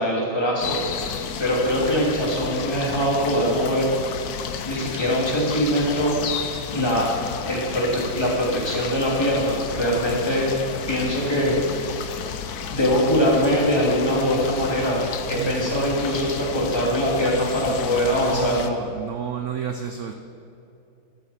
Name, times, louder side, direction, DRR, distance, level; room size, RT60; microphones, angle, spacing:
voice 1, 0.0-3.9 4.6-6.5 6.7-7.1 7.4-10.5 10.9-12.2 12.7-18.6, equal, 15° left, -4 dB, 2.7 m, -23 dB
sound 1, 0.6-18.7, left 7 dB, 65° left, 1.1 m, -32 dB
voice 2, 17.7-18.0 18.3-20.1, right 8 dB, 70° right, 6 dB, 0.7 m, -31 dB
13.5 x 12.0 x 4.3 m, 2.7 s
omnidirectional pair, 2.0 m